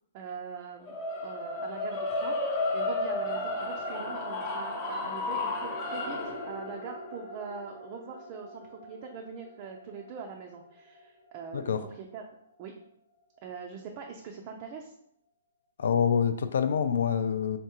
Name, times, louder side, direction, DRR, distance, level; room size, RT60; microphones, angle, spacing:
voice 1, 0.1-1.0 1.2-2.4 2.7-6.2 6.5-11.7 12.0-12.2 12.6-12.7 13.4-14.9, right 6 dB, 30° right, 2 dB, 0.4 m, -42 dB
sound 1, 0.8-11.0, left 2 dB, 20° left, 0.8 m, -34 dB
voice 2, 15.8-17.6, left 7 dB, 65° left, 10 dB, 0.4 m, -26 dB
3.8 x 3.5 x 2.9 m, 0.71 s
hypercardioid pair, 165°, 0 cm